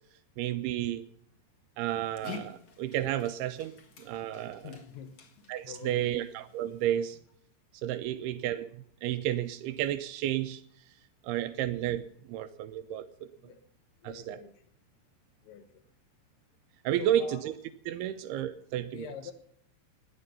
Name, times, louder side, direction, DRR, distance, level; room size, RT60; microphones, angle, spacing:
voice 1, 0.4-1.0 1.8-4.7 5.5-7.2 7.8-10.6 11.2-12.0 12.3-13.1 14.0-14.4 16.9-17.5 17.9-19.1, right 12 dB, 85° right, 11 dB, 2.3 m, -32 dB
Dog, 1.8-7.2, left 5 dB, 50° left, 2.2 m, -49 dB
voice 2, 4.6-5.1 5.7-6.2 13.4-13.6 14.0-14.6 15.4-15.8 17.0-17.4 18.9-19.3, left 8 dB, 80° left, 6 dB, 3.3 m, -45 dB
17.5 x 10.5 x 5.5 m, 0.69 s
omnidirectional pair, 5.2 m